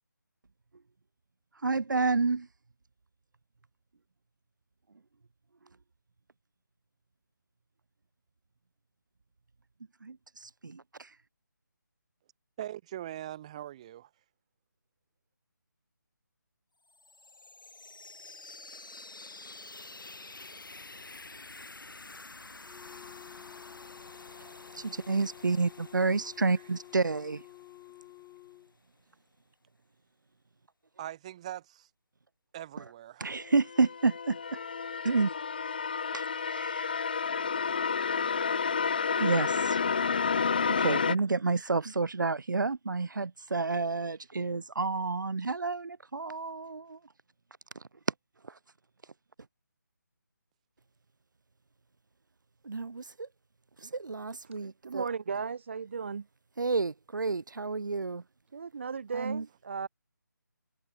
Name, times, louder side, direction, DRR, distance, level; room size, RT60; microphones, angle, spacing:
voice 1, 1.5-2.5 10.0-11.2 24.4-27.5 32.8-32.9 33.2-34.6 35.0-35.3 36.1-37.2 39.2-39.8 40.7-47.1 47.7-48.1 48.4-48.6 49.0-49.1 52.6-53.3 53.8-55.1 56.6-58.2 59.1-59.4, right 4 dB, 70° right, 1.4 m, -30 dB
voice 2, 12.6-14.1 31.0-31.9 32.5-33.3, right 12 dB, 20° right, 6.5 m, -41 dB
sound 1, 16.9-28.6, left 3 dB, 90° left, 4.8 m, -49 dB
Wind instrument woodwind instrument, 22.6-28.7, left 23 dB, 10° left, 1.9 m, -52 dB
sound 2, 33.4-41.2, left 6 dB, 25° left, 0.5 m, -30 dB
voice 3, 54.8-56.3 58.5-59.9, right 5 dB, 35° right, 1.1 m, -35 dB
figure-of-eight pair, 170°, 11 cm